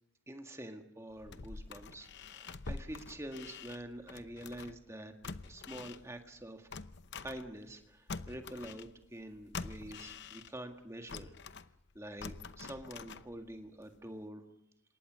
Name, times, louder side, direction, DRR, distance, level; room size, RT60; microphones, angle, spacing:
voice 1, 0.3-6.7 7.2-11.3 12.0-14.4, right 1 dB, 15° right, 5 dB, 1.8 m, -46 dB
sound 1, 1.1-4.9 5.2-7.8 8.1-10.7 11.1-13.6 14.0-14.1, left 4 dB, 50° left, 0.8 m, -46 dB
27.0 x 23.0 x 6.3 m, 0.82 s
head